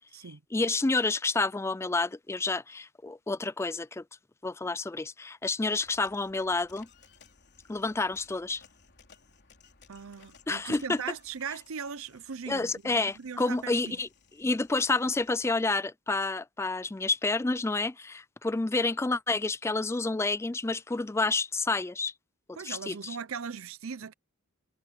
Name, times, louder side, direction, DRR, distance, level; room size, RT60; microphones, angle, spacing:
voice 1, 0.5-4.0 4.4-6.9 7.7-8.6 10.5-11.0 12.5-14.1 14.4-22.1 22.5-23.2, left 3 dB, 10° left, 0.3 m, -29 dB
sound 1, 5.8-15.8, left 5 dB, 50° left, 3.4 m, -60 dB
voice 2, 9.9-14.0 22.6-24.1, right 6 dB, 70° right, 0.6 m, -39 dB
head